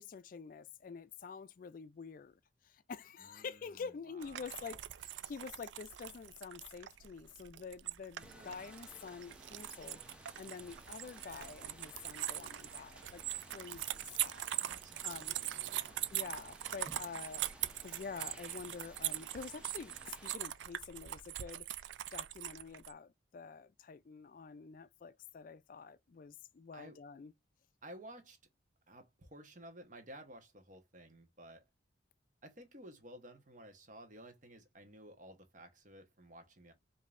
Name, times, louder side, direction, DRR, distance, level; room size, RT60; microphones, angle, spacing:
voice 1, 0.0-13.2 13.5-14.5 15.0-15.4 16.1-17.5 17.8-27.3, left 5 dB, 45° left, 0.3 m, -48 dB
voice 2, 3.2-4.8 8.2-8.7 14.5-16.0 26.7-27.0 27.8-28.4 28.9-31.6 32.4-36.7, right 1 dB, 40° right, 1.1 m, -54 dB
sound 1, 4.2-22.9, right 13 dB, 70° right, 0.3 m, -42 dB
sound 2, 8.2-20.3, right 1 dB, 5° right, 0.7 m, -57 dB
5.2 x 2.7 x 2.5 m
head